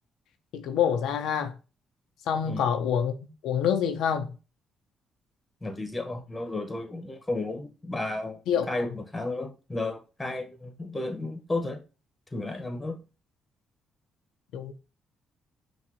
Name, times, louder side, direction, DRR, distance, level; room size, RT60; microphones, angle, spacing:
voice 1, 0.5-1.5 2.3-3.1 3.4-4.3 8.5-8.7 14.5-14.7, left 8 dB, 85° left, 0.5 m, -26 dB
voice 2, 5.6-11.8 12.3-13.0, left 2 dB, 15° left, 1.1 m, -33 dB
5.8 x 2.7 x 2.9 m
cardioid pair, 90°, 0 cm